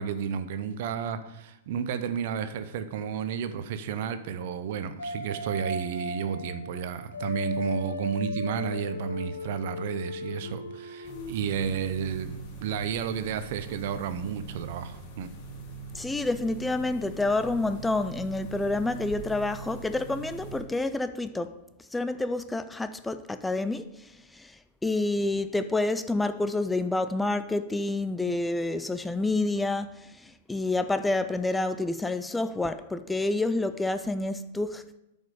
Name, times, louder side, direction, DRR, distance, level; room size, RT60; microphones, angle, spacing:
voice 1, 0.0-15.3, right 7 dB, 60° right, 0.7 m, -32 dB
sound 1, 5.0-11.3, left 1 dB, 90° left, 0.9 m, -36 dB
sound 2, 11.0-20.6, right 3 dB, 40° left, 1.7 m, -42 dB
voice 2, 15.9-35.0, left 2 dB, 10° left, 0.4 m, -29 dB
8.9 x 5.3 x 5.2 m
hypercardioid pair, 110°, 0 cm